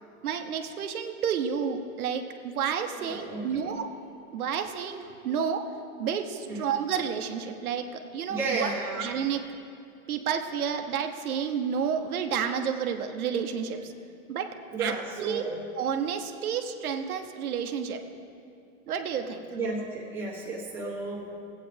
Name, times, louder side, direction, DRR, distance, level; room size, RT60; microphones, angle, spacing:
voice 1, 0.2-3.9 4.3-5.6 6.0-8.7 9.0-9.4 10.1-13.9 14.3-14.5 14.8-14.9 15.2-15.4 15.8-18.0 18.9-19.5, right 7 dB, 90° right, 6 dB, 1.0 m, -30 dB
voice 2, 3.0-3.7 6.5-6.7 8.3-9.0 14.7-15.5 19.5-21.3, right 3 dB, 5° right, -6 dB, 1.3 m, -33 dB
18.0 x 8.4 x 3.4 m, 2.6 s
supercardioid pair, 160°, 42 cm